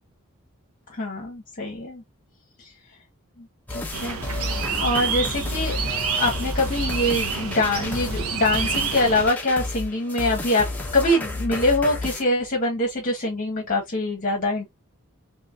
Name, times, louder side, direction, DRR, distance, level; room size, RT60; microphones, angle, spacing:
voice 1, 0.9-2.0 2.6-2.7 3.4-3.5 3.7-4.2 4.8-5.8 6.2-10.6 10.9-14.7, left 1 dB, 40° left, 1.3 m, -24 dB
sound 1, 3.7-12.2, left 2 dB, 10° left, 1.0 m, -31 dB
sound 2, 3.9-9.3, right 6 dB, 75° right, 0.7 m, -28 dB
4.4 x 3.1 x 2.5 m
head